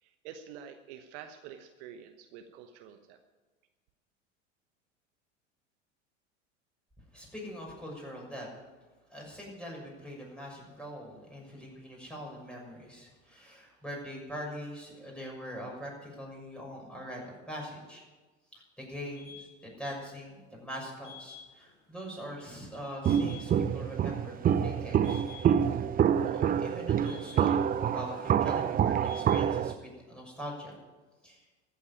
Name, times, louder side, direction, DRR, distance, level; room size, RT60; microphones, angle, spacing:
voice 1, 0.0-3.2, right 8 dB, 60° right, 7 dB, 1.2 m, -48 dB
voice 2, 7.1-8.5 9.1-18.0 18.5-25.2 26.3-27.5 27.8-30.8 31.2-31.4, equal, 5° left, -2 dB, 6.5 m, -42 dB
sound 1, 19.1-19.6 21.0-21.8 22.1-22.2 22.6-22.7 23.0-23.7 24.0-24.7 25.0-25.8 26.1-27.8 28.1-28.6 29.0-29.5, left 6 dB, 65° left, 3.6 m, -52 dB
Walk footsteps, 23.0-29.7, right 9 dB, 25° right, 0.6 m, -27 dB
14.0 x 8.5 x 9.9 m, 1.3 s
hypercardioid pair, 80°, 38 cm